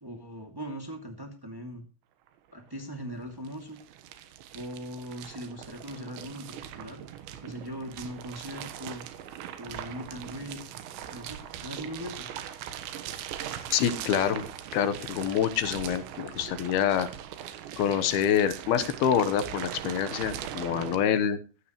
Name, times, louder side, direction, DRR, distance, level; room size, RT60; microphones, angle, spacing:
voice 1, 0.0-1.8 2.5-3.8 4.5-7.0 7.4-9.0 9.6-10.6 11.1-12.3, equal, 35° right, 2 dB, 0.3 m, -40 dB
sound 1, 2.3-2.4 2.5-21.0, right 10 dB, 85° right, 3.5 m, -40 dB
voice 2, 13.7-14.4 14.7-17.1 17.8-21.4, left 9 dB, 70° left, 12 dB, 2.7 m, -26 dB
15.0 x 14.5 x 3.1 m, 0.35 s
omnidirectional pair, 5.1 m